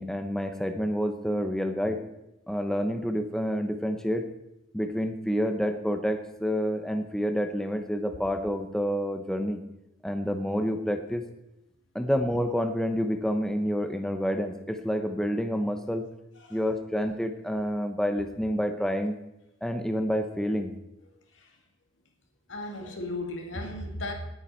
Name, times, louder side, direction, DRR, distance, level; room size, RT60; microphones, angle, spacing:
voice 1, 0.0-2.0 2.5-4.3 4.7-9.6 10.0-11.2 11.9-16.0 16.5-19.1 19.6-20.7, equal, 5° left, 6 dB, 0.8 m, -28 dB
voice 2, 22.5-24.1, left 2 dB, 70° left, 3 dB, 2.3 m, -35 dB
19.0 x 9.5 x 4.4 m, 0.88 s
head